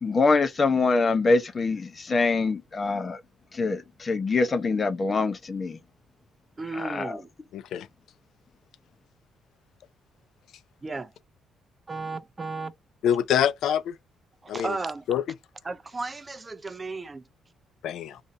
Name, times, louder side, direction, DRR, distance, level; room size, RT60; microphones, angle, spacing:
voice 1, 0.0-3.2 3.5-5.8 6.8-7.2, left 3 dB, 35° left, 0.7 m, -24 dB
voice 2, 6.6-7.3 10.8-11.1 11.9-12.7 14.4-15.0 15.6-17.2, right 3 dB, 25° right, 0.4 m, -34 dB
voice 3, 7.5-7.9 13.0-13.9 14.5-14.8 15.1-15.2 17.8-18.2, left 9 dB, 75° left, 0.3 m, -25 dB
2.6 x 2.5 x 3.3 m
cardioid pair, 90°, 0 cm